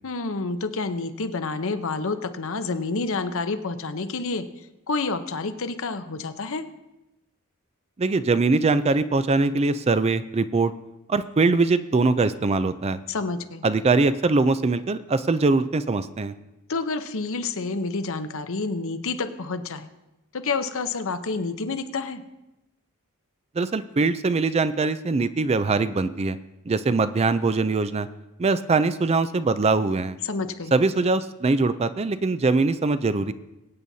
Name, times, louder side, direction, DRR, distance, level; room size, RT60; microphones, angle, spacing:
voice 1, 0.0-4.4 4.9-6.7 13.1-13.6 16.7-19.9 20.3-22.2 30.2-30.7, left 3 dB, 65° left, 9 dB, 0.8 m, -29 dB
voice 2, 8.0-10.7 11.1-13.0 13.6-16.3 23.6-26.4 26.7-28.1 28.4-30.2 30.7-33.3, right 3 dB, 30° right, 12 dB, 0.4 m, -22 dB
23.0 x 8.7 x 2.8 m, 0.97 s
head